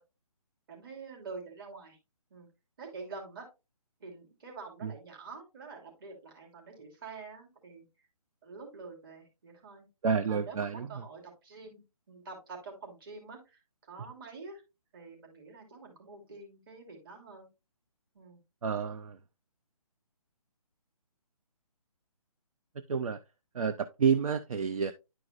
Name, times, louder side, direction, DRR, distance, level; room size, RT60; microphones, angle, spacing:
voice 1, 0.7-2.0 2.3-2.5 2.8-3.5 4.0-7.8 8.4-9.9 10.3-11.8 12.1-14.6 14.9-17.5 18.1-18.4, right 4 dB, 35° right, 2.9 m, -46 dB
voice 2, 10.0-11.0 18.6-19.2 22.9-23.2 23.5-24.9, right 6 dB, 65° right, 0.6 m, -29 dB
11.0 x 4.7 x 2.4 m
hypercardioid pair, 160°, 19 cm